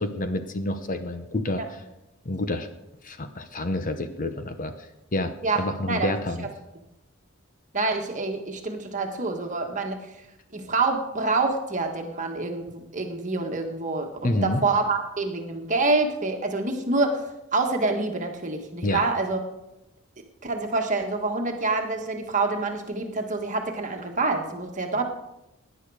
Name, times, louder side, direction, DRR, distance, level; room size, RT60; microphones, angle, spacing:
voice 1, 0.0-1.8 2.2-2.7 3.0-4.7 5.1-6.5 14.2-14.6 18.8-19.0, left 1 dB, 40° left, 8 dB, 0.8 m, -28 dB
voice 2, 7.7-10.0 10.5-17.2 17.5-19.4 20.4-25.0, right 3 dB, 35° right, 3 dB, 1.6 m, -26 dB
17.0 x 10.0 x 4.9 m, 0.94 s
head